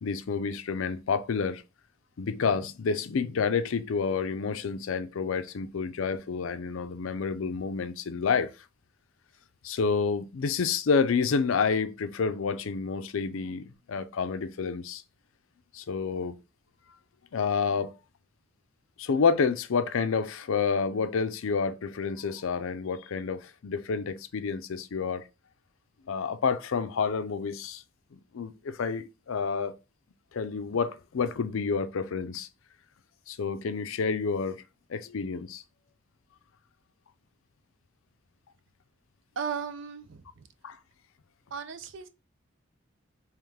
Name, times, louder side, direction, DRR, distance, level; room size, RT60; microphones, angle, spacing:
voice 1, 0.0-1.6 2.2-8.5 9.6-15.0 15.7-16.4 17.3-17.9 19.0-25.3 26.1-27.8 28.1-29.7 30.3-32.5 33.3-34.6 34.9-35.6 40.6-40.8, left 5 dB, 75° left, 0.4 m, -29 dB
voice 2, 39.4-40.5 41.5-42.1, right 6 dB, 65° right, 0.5 m, -36 dB
3.3 x 3.0 x 3.5 m
head